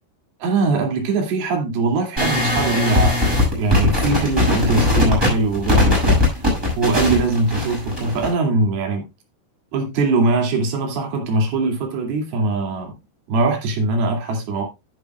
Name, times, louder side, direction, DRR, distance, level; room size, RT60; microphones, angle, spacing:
voice 1, 0.4-6.4 6.8-9.1 9.7-12.9 13.3-14.6, right 3 dB, 55° right, 4.2 m, -21 dB
sound 1, 2.2-8.3, left 2 dB, 5° right, 6.1 m, -19 dB
11.5 x 10.5 x 2.3 m
omnidirectional pair, 5.6 m